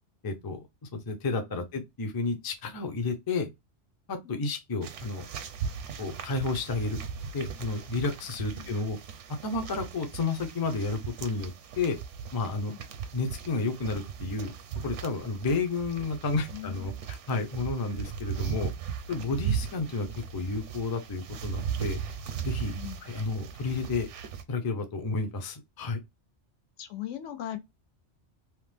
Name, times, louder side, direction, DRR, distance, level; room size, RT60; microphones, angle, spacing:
voice 1, 0.2-0.6 0.9-3.5 4.1-5.3 6.0-7.0 7.3-9.0 9.4-12.0 12.3-12.7 13.1-14.5 14.8-16.9 17.3-18.7 19.1-20.1 20.3-22.0 22.4-22.7 23.0-24.1 24.5-26.0, left 3 dB, 35° left, 0.3 m, -31 dB
sound 1, 4.8-24.4, right 7 dB, 80° right, 0.9 m, -37 dB
voice 2, 16.5-16.9 22.7-23.0 26.8-27.6, left 12 dB, 90° left, 0.9 m, -39 dB
2.9 x 2.0 x 3.3 m
omnidirectional pair, 1.2 m